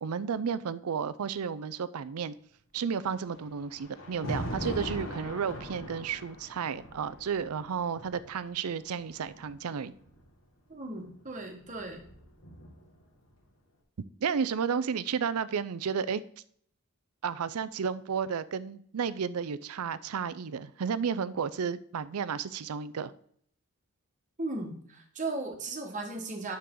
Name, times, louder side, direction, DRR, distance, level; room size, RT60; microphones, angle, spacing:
voice 1, 0.0-2.3 2.7-9.9 14.2-16.2 17.2-23.1, right 6 dB, 80° right, 16 dB, 0.5 m, -32 dB
Thunder, 3.0-10.2 11.3-13.0, equal, 60° left, 1.9 m, -41 dB
voice 2, 10.7-12.0 24.4-26.6, right 2 dB, 35° right, 2 dB, 1.4 m, -36 dB
9.4 x 6.6 x 3.7 m, 0.64 s
head